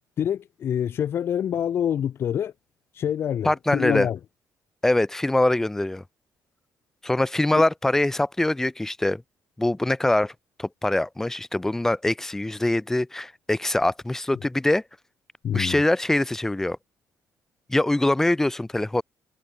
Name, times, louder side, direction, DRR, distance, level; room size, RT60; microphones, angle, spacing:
voice 1, 0.2-2.5 3.0-4.2 7.5-7.6 15.4-15.8, left 9 dB, 50° left, 0.9 m, -26 dB
voice 2, 3.4-4.1 4.8-6.0 7.0-9.2 9.6-10.3 10.6-14.8 15.5-16.8 17.7-19.0, left 1 dB, 10° left, 0.8 m, -23 dB
cardioid pair, 145°, 5 cm